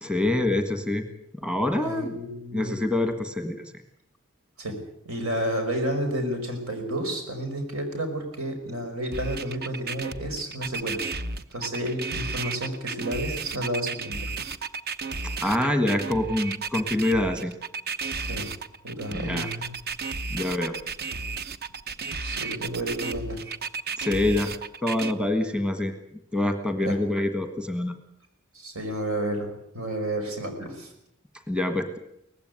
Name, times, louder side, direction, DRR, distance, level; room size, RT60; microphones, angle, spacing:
voice 1, 0.0-1.0 1.4-2.1 2.5-3.6 15.4-17.5 19.2-19.5 20.3-20.7 24.0-24.5 24.8-25.9 26.3-27.9 31.5-32.0, left 1 dB, 5° right, 7 dB, 1.6 m, -25 dB
voice 2, 1.8-2.8 4.6-4.7 5.0-11.0 11.5-14.3 18.3-18.5 18.8-19.7 22.2-23.4 26.8-27.0 28.5-30.9, right 1 dB, 80° right, 5 dB, 5.6 m, -31 dB
sound 1, 9.1-25.1, right 4 dB, 50° right, 0.9 m, -33 dB
18.5 x 15.5 x 9.5 m, 0.77 s
head